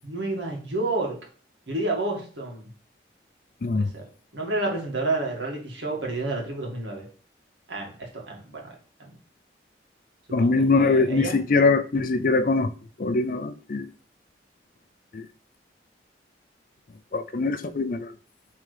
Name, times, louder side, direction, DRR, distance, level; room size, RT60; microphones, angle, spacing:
voice 1, 0.0-1.2 1.7-2.7 3.7-4.0 4.3-7.0 7.7-8.7 9.0-9.1 10.4-11.4, right 2 dB, 80° right, 2.0 m, -30 dB
voice 2, 10.3-12.7 13.0-13.9 15.1-15.3 17.1-18.1, left 3 dB, 50° left, 0.4 m, -22 dB
7.9 x 3.7 x 3.4 m
head